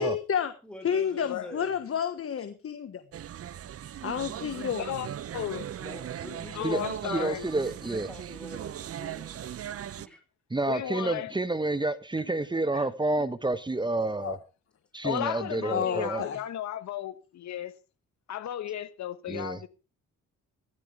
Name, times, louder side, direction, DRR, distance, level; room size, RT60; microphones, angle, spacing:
voice 1, 0.0-0.5 0.8-3.0 4.0-4.9 14.2-14.4 15.7-16.4, left 8 dB, 50° left, 1.4 m, -30 dB
voice 2, 0.6-1.8 5.8-9.5 10.0-10.2 10.9-11.0 12.7-12.9, equal, 5° left, 5.5 m, -45 dB
sound 1, 3.1-10.1, right 10 dB, 50° right, 0.8 m, -38 dB
voice 3, 5.3-5.7 6.5-7.4 10.7-11.3 15.0-17.8 18.3-19.7, left 11 dB, 65° left, 1.4 m, -34 dB
voice 4, 6.6-8.1 10.5-14.4 14.9-16.3 19.3-19.6, right 2 dB, 15° right, 1.1 m, -29 dB
16.5 x 13.5 x 3.4 m
cardioid pair, 90°, 30 cm